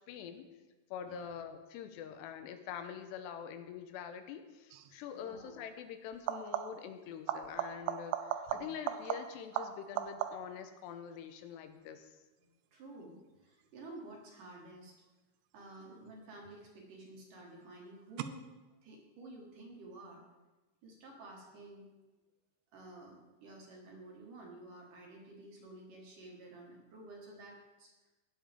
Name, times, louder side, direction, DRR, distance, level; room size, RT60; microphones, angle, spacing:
voice 1, 0.1-0.4 0.9-12.1, left 8 dB, 85° left, 8 dB, 2.8 m, -45 dB
sound 1, 4.7-5.0 6.1-6.9 7.3-10.7 16.1-16.7 18.2-18.3, right 11 dB, 85° right, 2.7 m, -38 dB
voice 2, 5.1-5.6 8.5-8.7 12.4-15.0 15.5-18.5 18.8-20.2 20.8-21.9 22.7-27.9, right 2 dB, 60° right, -1 dB, 2.9 m, -52 dB
18.5 x 7.3 x 3.5 m, 1.1 s
omnidirectional pair, 4.9 m